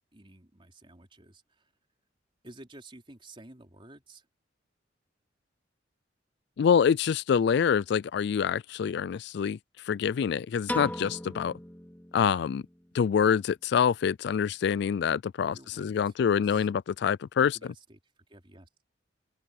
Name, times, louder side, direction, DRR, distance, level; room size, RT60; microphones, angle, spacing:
voice 1, 0.1-1.6 2.4-4.3 15.4-16.7 17.4-18.0 18.3-18.7, right 1 dB, 30° right, 3.6 m, -52 dB
voice 2, 6.6-9.6 9.9-11.5 12.1-12.6 12.9-17.6, left 7 dB, 60° left, 0.3 m, -26 dB
Piano, 10.7-12.9, left 1 dB, 10° left, 2.5 m, -38 dB
open air
head